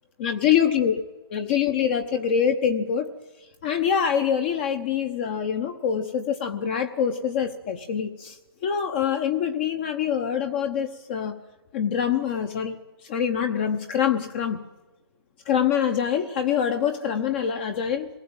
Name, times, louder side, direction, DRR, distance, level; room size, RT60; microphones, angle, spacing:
voice 1, 0.2-1.0 1.3-3.1 3.6-8.4 8.6-11.3 11.7-12.8 13.1-14.6 15.5-18.1, left 8 dB, 25° left, 7 dB, 0.9 m, -25 dB
26.0 x 19.5 x 8.9 m, 1.2 s
hypercardioid pair, 155°, 13 cm